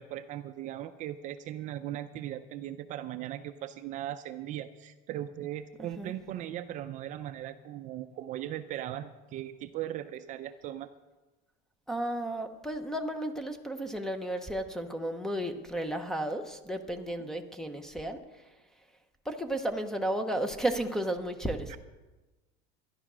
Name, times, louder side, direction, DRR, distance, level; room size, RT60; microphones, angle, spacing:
voice 1, 0.0-10.9 17.1-17.3 21.7-21.8, right 12 dB, 35° right, 9 dB, 0.5 m, -38 dB
voice 2, 5.8-6.1 11.9-18.2 19.3-21.8, right 1 dB, ahead, 8 dB, 0.7 m, -33 dB
13.0 x 11.0 x 6.1 m, 1.2 s
cardioid pair, 170°, 21 cm